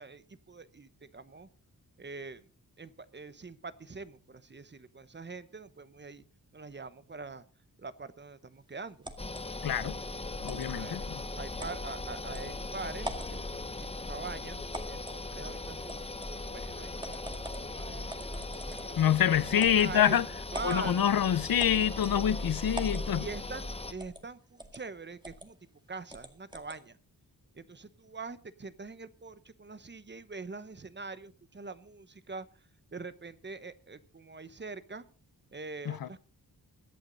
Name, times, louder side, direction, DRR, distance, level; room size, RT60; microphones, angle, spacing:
voice 1, 0.0-1.5 2.0-2.5 2.8-6.2 6.5-7.4 7.8-9.1 10.6-11.0 11.4-13.7 14.1-16.1 16.5-20.2 20.5-21.0 23.1-25.6 25.9-27.0 27.5-32.5 32.9-35.1 35.5-36.2, right 4 dB, 30° right, 1.0 m, -43 dB
sound 1, 9.0-9.4 10.5-10.7 11.6-11.8 12.3-12.4 13.0-13.4 14.7-15.2 15.9-16.3 17.0-17.7 18.1-19.0 19.6-19.9 20.5-20.8 21.6-22.2 22.7-23.1 24.0-24.3 24.6-24.8 25.2-25.5 26.1-26.8, right 1 dB, 10° right, 1.9 m, -42 dB
sound 2, 9.2-23.9, left 2 dB, 15° left, 1.1 m, -39 dB
voice 2, 9.6-10.0 10.4-11.2 19.0-20.2 20.6-23.3 35.9-36.1, left 9 dB, 65° left, 0.8 m, -26 dB
22.0 x 8.8 x 4.0 m
wide cardioid pair, 95°, 37 cm